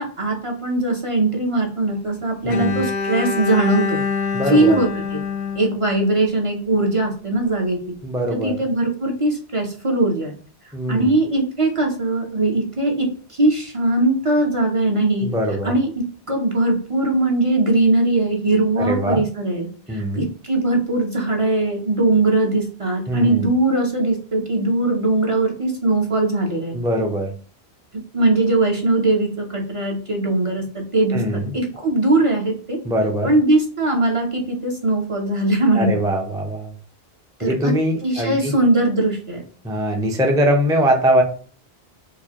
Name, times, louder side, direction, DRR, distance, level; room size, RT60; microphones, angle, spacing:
voice 1, 0.0-4.0 4.5-5.2 5.6-7.8 8.3-10.4 10.9-15.3 15.6-26.8 27.9-31.2 31.5-32.8 33.2-35.9 37.4-37.7 38.0-39.4, right 2 dB, 35° right, 1 dB, 0.7 m, -20 dB
voice 2, 2.4-2.8 4.3-4.8 8.0-8.6 10.7-11.1 15.2-15.7 18.8-19.2 19.9-20.3 23.1-23.5 26.7-27.3 31.1-31.5 32.8-33.3 35.7-36.7 37.4-38.5 39.6-41.2, equal, 5° right, 1 dB, 0.4 m, -21 dB
Bowed string instrument, 2.5-6.5, left 5 dB, 85° left, 0.8 m, -26 dB
4.7 x 2.2 x 2.8 m, 0.43 s
omnidirectional pair, 1.1 m